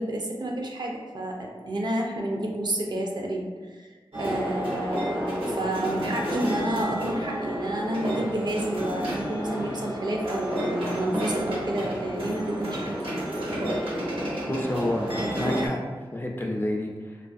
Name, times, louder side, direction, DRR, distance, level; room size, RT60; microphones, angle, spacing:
voice 1, 0.0-3.9 4.2-12.9, right 1 dB, 55° right, 0 dB, 0.4 m, -30 dB
sound 1, 4.1-15.7, equal, 85° right, 0.8 m, -30 dB
voice 2, 14.5-15.8 16.1-17.2, left 1 dB, 25° left, 0 dB, 0.3 m, -29 dB
2.5 x 2.4 x 2.4 m, 1.4 s
wide cardioid pair, 65°, 9 cm